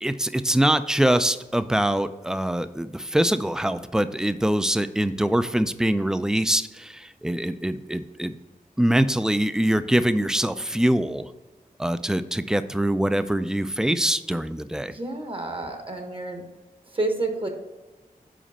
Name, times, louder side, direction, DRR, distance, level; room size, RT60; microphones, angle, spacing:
voice 1, 0.0-8.3 8.8-11.3 11.8-14.9, right 1 dB, 5° right, 12 dB, 0.3 m, -23 dB
voice 2, 14.9-16.4 16.9-17.5, right 2 dB, 35° right, 4 dB, 1.0 m, -29 dB
5.1 x 4.9 x 5.4 m, 1.2 s
wide cardioid pair, 85°, 15 cm